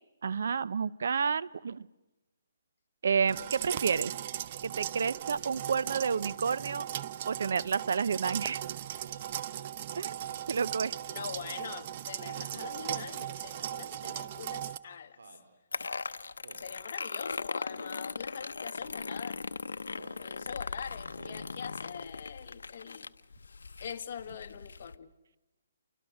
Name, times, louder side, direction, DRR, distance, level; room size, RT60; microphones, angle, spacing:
voice 1, 0.2-1.9 3.0-4.1 4.6-6.8 7.3-8.6 10.0-10.1 10.5-10.9, right 6 dB, 70° right, 0.8 m, -30 dB
sound 1, 3.3-14.8, right 11 dB, 40° right, 0.8 m, -38 dB
Speech synthesizer, 9.0-9.3 10.1-10.6 11.3-11.6 12.5-13.0 13.9-14.3 15.2-15.5 16.4-16.7 17.7-17.9 18.8-19.0 19.9-20.3 21.1-21.5, right 4 dB, 85° right, 4.9 m, -54 dB
voice 2, 11.1-15.4 16.6-19.4 20.2-23.1 23.8-25.1, left 7 dB, 50° left, 1.8 m, -43 dB
sound 2, 15.7-25.0, left 4 dB, 90° left, 0.8 m, -39 dB
29.5 x 25.0 x 6.5 m
hypercardioid pair, 160°, 0 cm